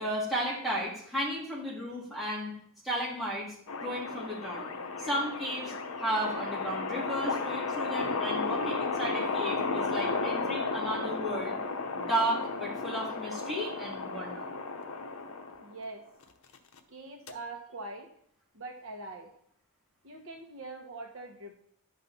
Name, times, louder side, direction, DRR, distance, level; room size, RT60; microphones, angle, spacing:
voice 1, 0.0-2.5 2.8-3.5 3.8-11.6 11.9-14.5, right 1 dB, ahead, -6 dB, 2.7 m, -34 dB
sound 1, 3.7-15.8 16.5-16.8 17.3-17.4, left 3 dB, 75° left, 0.9 m, -33 dB
voice 2, 15.6-16.0 16.9-18.1 18.5-19.3 20.0-21.5, right 2 dB, 60° right, 2 dB, 1.2 m, -43 dB
11.5 x 5.8 x 4.2 m, 0.65 s
head